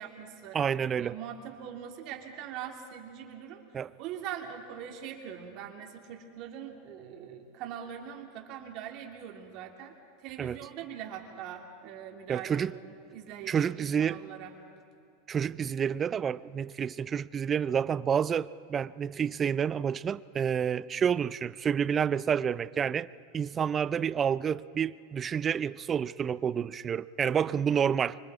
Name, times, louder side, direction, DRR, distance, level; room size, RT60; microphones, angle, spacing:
voice 1, 0.0-0.6 1.0-3.6 4.0-9.9 10.2-14.5, right 9 dB, 50° right, 2 dB, 2.7 m, -42 dB
voice 2, 0.5-1.2 3.7-3.9 10.4-10.6 12.3-12.7 13.5-14.2 15.3-23.1 23.3-28.2, right 7 dB, 25° right, 18 dB, 0.5 m, -29 dB
25.5 x 24.5 x 4.8 m, 2.6 s
supercardioid pair, 120°, 0 cm